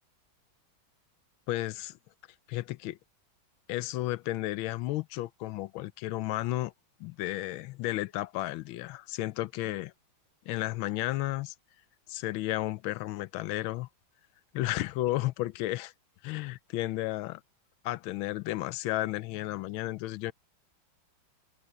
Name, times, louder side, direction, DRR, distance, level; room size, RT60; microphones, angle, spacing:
voice 1, 1.5-2.0 2.5-3.0 3.7-6.7 7.0-9.9 10.5-11.5 12.1-13.9 14.5-15.9 16.2-17.4 17.8-20.3, left 16 dB, 90° left, 1.4 m, -33 dB
omnidirectional pair, 2.1 m